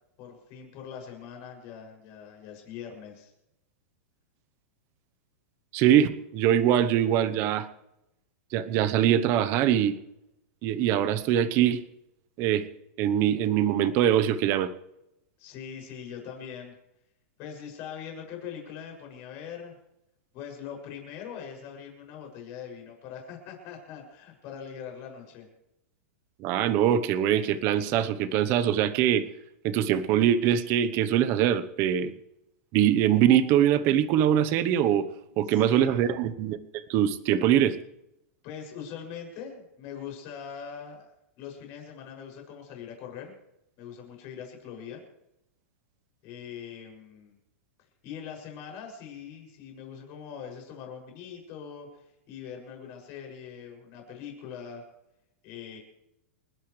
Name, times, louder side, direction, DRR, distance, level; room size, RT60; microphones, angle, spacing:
voice 1, 0.2-3.3 15.4-16.7 17.4-19.8 20.3-25.5 35.4-36.0 38.4-41.1 41.4-43.3 43.8-45.0 46.2-47.3 48.0-54.8 55.4-55.8, left 7 dB, 35° left, 1 dB, 6.9 m, -42 dB
voice 2, 5.7-7.7 8.5-9.9 10.6-11.8 12.4-12.6 13.0-14.7 26.4-29.2 29.6-32.1 32.7-35.1 35.4-36.6 36.9-37.8, right 10 dB, 30° right, 13 dB, 1.0 m, -23 dB
29.5 x 12.0 x 3.3 m, 0.87 s
supercardioid pair, 170°, 8 cm